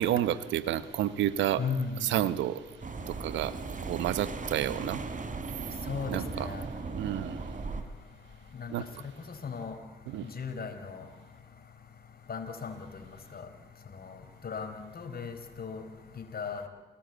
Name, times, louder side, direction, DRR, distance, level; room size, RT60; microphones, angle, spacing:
voice 1, 0.0-1.6 2.0-2.6 3.1-3.5 3.8-5.0 6.1-6.5 7.0-7.5 8.7-8.9 10.1-10.3, right 12 dB, 80° right, 15 dB, 1.1 m, -30 dB
voice 2, 1.6-2.1 5.9-6.6 8.6-8.7 9.4-9.8 10.2-11.0 12.3-13.5 13.9-15.8 16.2-16.7, left 5 dB, 50° left, 7 dB, 4.6 m, -37 dB
sound 1, 2.8-7.8, right 4 dB, 45° right, 3.4 m, -37 dB
29.0 x 18.0 x 8.2 m, 1.3 s
hypercardioid pair, 45°, 19 cm